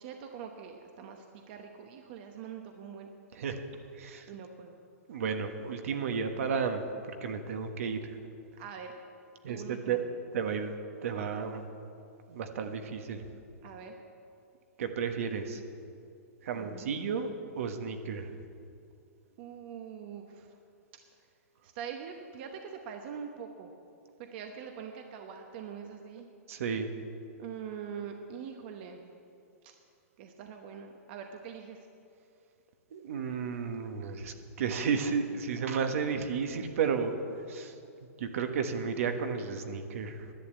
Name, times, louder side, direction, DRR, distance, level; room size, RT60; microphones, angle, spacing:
voice 1, 0.0-3.1 4.3-4.8 8.6-9.0 9.5-10.0 13.6-14.0 16.5-16.9 19.4-20.6 21.6-23.7 24.2-26.3 27.4-29.1 29.6-29.7 30.2-31.9, right 7 dB, 45° right, 4 dB, 1.0 m, -43 dB
voice 2, 3.3-3.6 4.0-4.3 5.1-6.8 7.2-8.2 9.4-9.6 9.9-10.0 10.3-10.8 11.0-11.6 12.3-13.3 14.8-15.6 16.4-17.3 17.6-18.3 26.5-26.9 32.9-37.1 37.5-37.7 38.2-40.3, right 6 dB, 65° right, 6 dB, 1.3 m, -32 dB
11.0 x 9.7 x 8.2 m, 2.5 s
hypercardioid pair, 150°, 8 cm